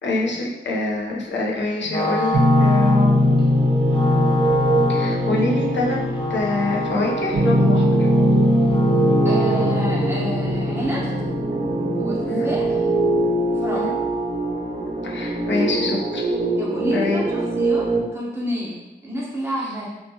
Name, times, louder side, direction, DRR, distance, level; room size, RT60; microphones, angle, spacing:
voice 1, 0.0-3.4 4.9-6.0 6.3-8.1 12.2-12.5 13.7-13.9 15.0-16.2 16.9-17.2 19.6-19.7, left 3 dB, 80° left, -2 dB, 0.5 m, -25 dB
Wind instrument woodwind instrument, 1.8-10.1, left 1 dB, 25° left, 0.5 m, -29 dB
sound 1, 2.3-18.0, equal, 55° right, 0.7 m, -20 dB
voice 2, 9.2-11.1 12.0-12.8 13.5-13.9 16.6-19.9, equal, 15° right, -6 dB, 0.9 m, -29 dB
2.6 x 2.3 x 2.7 m, 1.0 s
wide cardioid pair, 80°, 19 cm